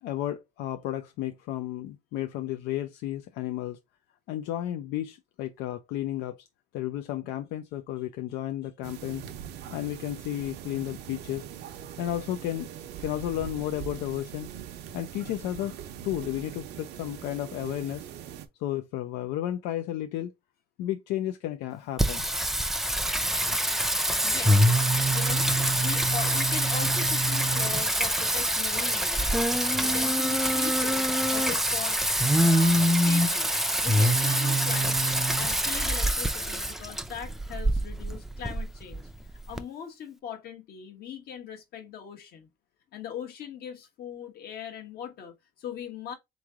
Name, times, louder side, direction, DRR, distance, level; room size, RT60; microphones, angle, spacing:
voice 1, 0.0-3.8 4.3-6.5 6.7-9.2 9.7-11.5 12.0-12.7 13.0-14.5 14.9-15.8 16.0-18.0 18.6-20.3 20.8-22.3, left 13 dB, 90° left, 0.5 m, -33 dB
sound 1, 8.8-18.5, right 10 dB, 85° right, 0.7 m, -42 dB
Singing, 22.0-39.6, right 1 dB, ahead, 0.4 m, -25 dB
voice 2, 24.2-32.0 32.3-33.5 33.8-39.1 39.5-42.5 42.9-46.1, left 8 dB, 65° left, 1.2 m, -40 dB
3.7 x 3.1 x 3.5 m
cardioid pair, 110°, 17 cm